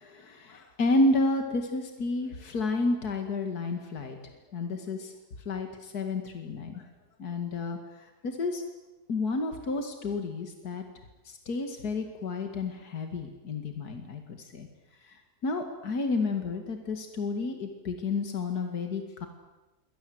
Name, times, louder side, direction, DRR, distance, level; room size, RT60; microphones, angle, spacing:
voice 1, 0.0-4.2 4.5-5.1 5.5-6.8 7.2-8.6 9.1-10.8 11.2-14.7 15.0-15.2 15.4-19.3, left 2 dB, 80° left, 5 dB, 2.6 m, -31 dB
27.5 x 23.0 x 8.0 m, 1.1 s
omnidirectional pair, 1.6 m